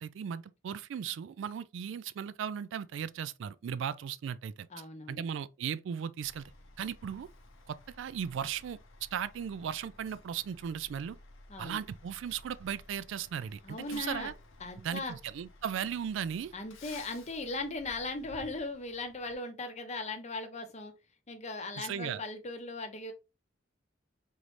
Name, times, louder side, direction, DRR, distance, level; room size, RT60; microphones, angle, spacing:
voice 1, 0.0-6.4 6.8-7.3 7.7-8.8 9.1-11.2 11.6-14.3 14.8-16.5 21.8-22.2, right 8 dB, 65° right, 0.3 m, -37 dB
voice 2, 4.7-5.2 11.5-11.8 13.6-14.3 14.6-15.2 16.5-20.9 21.3-23.1, left 2 dB, 35° left, 0.7 m, -38 dB
Truck, 6.2-19.3, left 2 dB, 85° left, 0.8 m, -55 dB
3.9 x 3.1 x 3.1 m
head